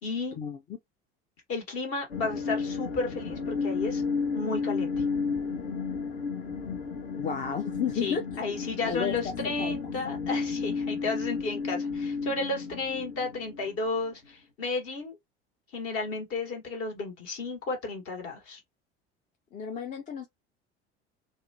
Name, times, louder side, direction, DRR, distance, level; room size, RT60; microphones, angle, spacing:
voice 1, 0.0-0.4 1.5-4.0 4.3-5.0 8.0-15.2 15.7-18.6, left 3 dB, 45° left, 1.3 m, -33 dB
sound 1, 2.1-14.1, left 5 dB, 65° left, 1.1 m, -33 dB
voice 2, 7.2-8.2 8.9-9.2 9.4-9.7 19.5-20.3, left 7 dB, 25° left, 0.5 m, -32 dB
2.7 x 2.2 x 2.6 m
figure-of-eight pair, 70°, 33 cm